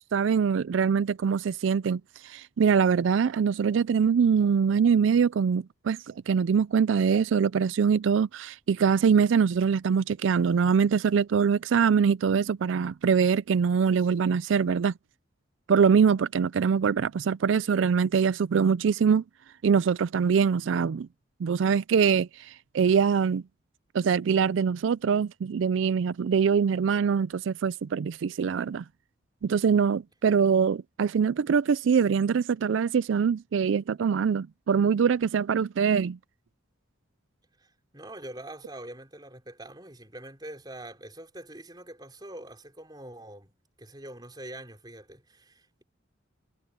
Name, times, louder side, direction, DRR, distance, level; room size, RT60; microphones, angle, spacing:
voice 1, 0.1-14.9 15.7-19.2 19.6-21.1 21.4-23.4 23.9-28.8 29.4-36.2, right 6 dB, 80° right, 0.4 m, -23 dB
voice 2, 37.6-45.8, right 1 dB, 20° right, 4.3 m, -44 dB
head